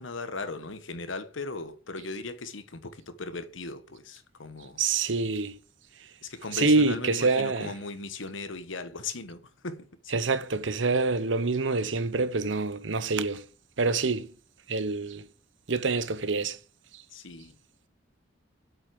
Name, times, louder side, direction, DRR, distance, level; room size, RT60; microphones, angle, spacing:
voice 1, 0.0-4.8 6.2-10.1 17.1-17.6, left 3 dB, 85° left, 1.2 m, -38 dB
voice 2, 4.8-5.6 6.5-7.7 10.1-13.4 13.8-14.3 14.7-15.2 15.7-16.6, right 3 dB, 75° right, 0.9 m, -26 dB
8.0 x 7.5 x 7.7 m
head